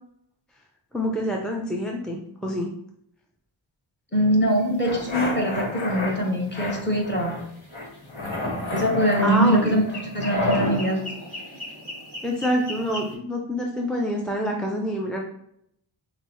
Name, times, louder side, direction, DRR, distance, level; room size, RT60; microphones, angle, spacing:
voice 1, 0.9-2.7 9.2-9.8 12.2-15.2, equal, ahead, -1 dB, 0.4 m, -26 dB
voice 2, 4.1-7.4 8.7-9.8 10.1-11.2, equal, 20° left, -1 dB, 1.2 m, -23 dB
sound 1, 4.5-13.2, left 1 dB, 55° left, 1.5 m, -39 dB
sound 2, 4.8-6.1 6.5-7.4 7.7-10.7, left 2 dB, 75° left, 1.2 m, -30 dB
5.9 x 2.1 x 3.0 m, 0.74 s
cardioid pair, 65°, 48 cm